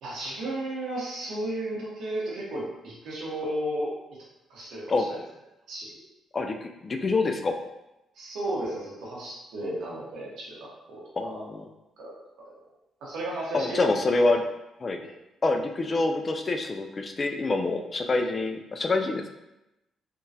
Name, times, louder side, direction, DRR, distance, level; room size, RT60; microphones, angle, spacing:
voice 1, 0.0-4.2 4.5-5.2 5.7-6.0 8.1-11.4 12.0-12.1 12.4-12.5 13.0-14.4 15.0-15.1, right 1 dB, 80° right, -5 dB, 1.1 m, -34 dB
voice 2, 6.3-7.6 11.2-11.6 13.5-14.4 14.8-15.0 15.4-19.3, left 3 dB, 35° left, 5 dB, 0.3 m, -26 dB
3.6 x 2.3 x 2.8 m, 0.93 s
cardioid pair, 90°, 0 cm